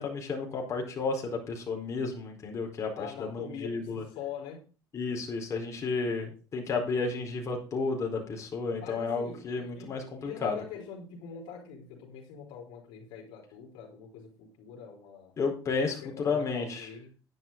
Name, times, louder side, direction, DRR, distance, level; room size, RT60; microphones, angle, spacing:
voice 1, 0.0-4.0 4.9-10.6 15.4-16.9, left 4 dB, 35° left, 1 dB, 4.5 m, -32 dB
voice 2, 3.0-4.6 6.0-6.1 8.6-15.3 16.0-17.1, left 7 dB, 75° left, 1 dB, 3.9 m, -44 dB
11.0 x 10.0 x 3.9 m, 0.35 s
cardioid pair, 115°, 9 cm